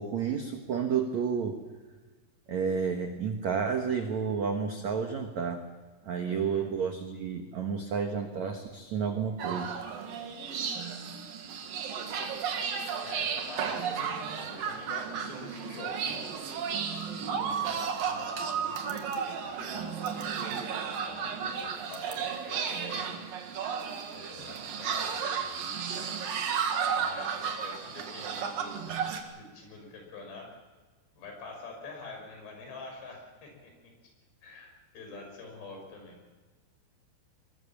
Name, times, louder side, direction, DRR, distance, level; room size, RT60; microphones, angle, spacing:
voice 1, 0.0-1.6 2.5-5.6 6.0-9.7, right 6 dB, 70° right, 4 dB, 1.7 m, -31 dB
voice 2, 6.2-6.7 13.0-16.2 16.9-18.8 19.4-20.2 20.8-23.1 24.1-25.8 26.9-30.5 31.2-33.9 34.4-36.2, left 3 dB, 60° left, 3 dB, 7.9 m, -46 dB
sound 1, 9.4-29.2, right 6 dB, 55° right, 3.1 m, -33 dB
22.5 x 21.5 x 7.2 m, 1.3 s
omnidirectional pair, 5.5 m